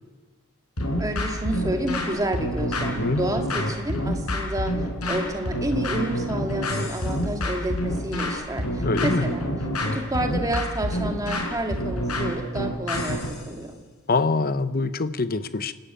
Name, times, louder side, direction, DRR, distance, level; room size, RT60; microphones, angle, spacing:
sound 1, 0.8-13.4, equal, 85° left, 5.5 m, -27 dB
voice 1, 1.0-9.5 9.8-13.2 13.5-13.8, right 1 dB, 15° right, 4 dB, 2.0 m, -30 dB
voice 2, 2.9-3.2 8.8-9.2 14.1-15.7, left 3 dB, 40° left, 13 dB, 0.8 m, -24 dB
28.5 x 12.5 x 9.0 m, 1.4 s
head